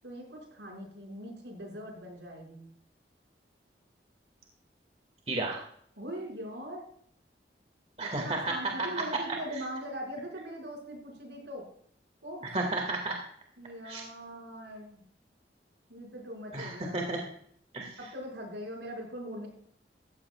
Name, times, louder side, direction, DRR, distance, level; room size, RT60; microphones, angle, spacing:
voice 1, 0.0-2.7 6.0-6.9 8.0-11.7 12.2-12.5 13.6-15.0 15.9-17.1 18.0-19.5, equal, 85° right, 0 dB, 5.5 m, -41 dB
voice 2, 5.3-5.6 8.0-9.0 12.4-13.2 13.8-14.0 16.5-17.2 17.7-17.9, right 2 dB, 35° right, 2 dB, 2.0 m, -32 dB
15.0 x 14.5 x 2.4 m, 0.63 s
head